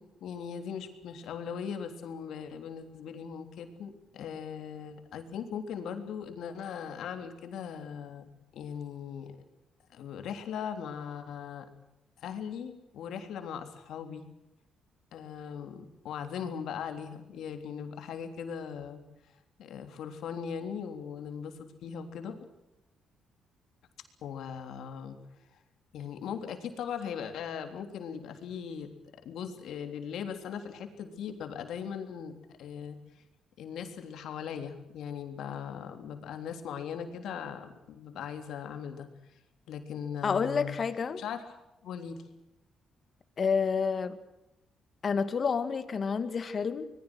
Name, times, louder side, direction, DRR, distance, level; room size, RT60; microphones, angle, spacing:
voice 1, 0.0-9.3 9.9-11.6 12.2-14.3 15.1-19.0 19.6-22.4 24.2-25.2 25.9-28.9 29.2-32.3 32.6-33.0 33.6-39.1 39.7-40.8 41.2-41.4 41.8-42.2, left 7 dB, 75° left, 6 dB, 3.5 m, -39 dB
voice 2, 40.2-41.2 43.4-44.2 45.0-46.9, left 5 dB, 45° left, 11 dB, 2.1 m, -29 dB
26.0 x 21.0 x 6.4 m, 0.90 s
cardioid pair, 90°, 0 cm